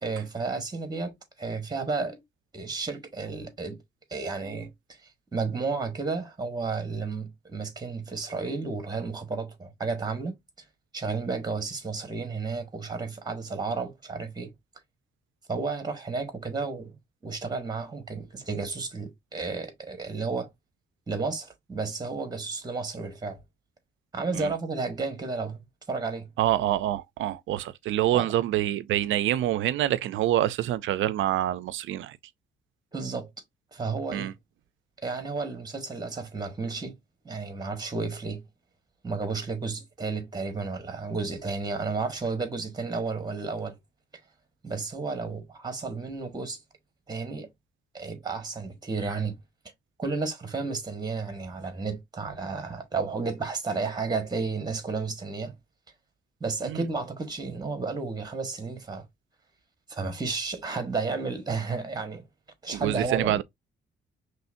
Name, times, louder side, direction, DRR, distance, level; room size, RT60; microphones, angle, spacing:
voice 1, 0.0-2.2 2.5-3.8 4.1-4.7 5.3-10.4 10.9-14.5 15.5-17.0 17.2-20.5 21.1-23.4 24.1-25.6 25.9-26.3 28.1-28.3 32.9-33.3 33.7-34.3 35.0-37.0 37.2-38.4 39.0-43.8 44.6-46.6 47.1-47.5 47.9-49.4 50.0-55.6 56.4-59.0 59.9-62.2 62.6-63.4, right 4 dB, 20° right, 1.6 m, -32 dB
voice 2, 26.4-32.2 34.1-34.3 56.6-56.8 62.7-63.4, right 13 dB, 75° right, 0.5 m, -26 dB
5.5 x 3.2 x 2.6 m
cardioid pair, 90°, 20 cm